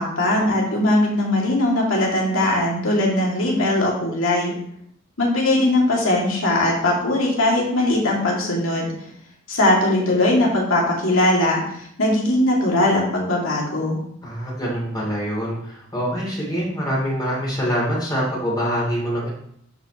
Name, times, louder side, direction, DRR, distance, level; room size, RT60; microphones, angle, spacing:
voice 1, 0.0-4.5 5.2-8.9 9.5-14.0, left 1 dB, 80° left, -2 dB, 2.3 m, -20 dB
voice 2, 14.2-19.3, equal, 20° left, -4 dB, 2.7 m, -25 dB
12.0 x 5.4 x 3.0 m, 0.69 s
head